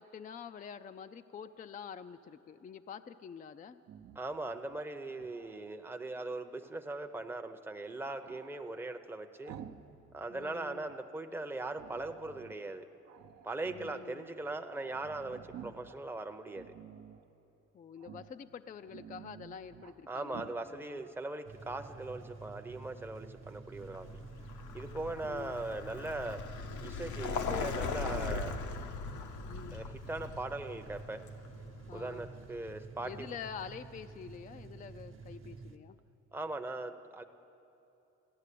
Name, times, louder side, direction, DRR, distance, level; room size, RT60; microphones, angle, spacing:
voice 1, 0.0-3.8 10.3-10.9 13.7-14.3 17.7-21.0 25.2-25.6 29.5-29.8 31.9-32.3 33.0-36.0, left 7 dB, 30° left, 11 dB, 0.4 m, -47 dB
Growling, 3.8-5.8 8.2-9.9 10.2-11.1 11.7-12.6 13.0-14.0 14.4-14.5 14.7-16.0 16.5-17.3 18.0-18.4 18.7-20.0 20.3-20.6, right 9 dB, 60° right, 0.7 m, -52 dB
voice 2, 4.1-9.5 10.1-12.9 13.4-16.7 20.1-24.2 24.7-26.4 26.8-28.6 29.7-31.2 31.9-33.3 36.3-37.2, right 2 dB, 5° right, 6 dB, 0.7 m, -40 dB
sound 1, 21.5-35.8, right 4 dB, 40° right, 1.0 m, -50 dB
Vehicle, 23.8-32.6, left 4 dB, 75° left, 0.9 m, -40 dB
15.5 x 10.5 x 8.4 m, 2.9 s
cardioid pair, 90°, 30 cm